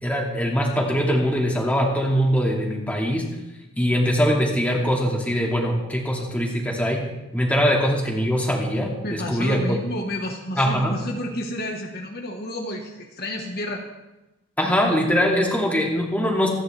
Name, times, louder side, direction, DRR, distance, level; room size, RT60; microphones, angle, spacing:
voice 1, 0.0-3.2 3.8-7.0 7.3-9.8 10.6-11.0 14.6-16.5, equal, 5° left, -2 dB, 2.5 m, -22 dB
voice 2, 9.0-13.8, left 1 dB, 50° left, 1 dB, 1.5 m, -30 dB
27.0 x 10.5 x 3.5 m, 1.0 s
head